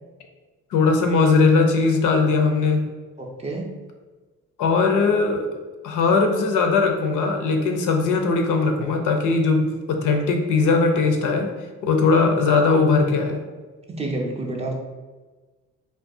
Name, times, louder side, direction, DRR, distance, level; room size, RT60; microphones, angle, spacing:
voice 1, 0.7-2.9 4.6-5.5 5.8-11.5 11.8-13.4, left 4 dB, 70° left, 4 dB, 0.5 m, -19 dB
voice 2, 3.2-3.7 13.9-14.7, right 2 dB, 20° right, 0 dB, 0.4 m, -29 dB
2.3 x 2.2 x 2.5 m, 1.3 s
cardioid pair, 75°, 32 cm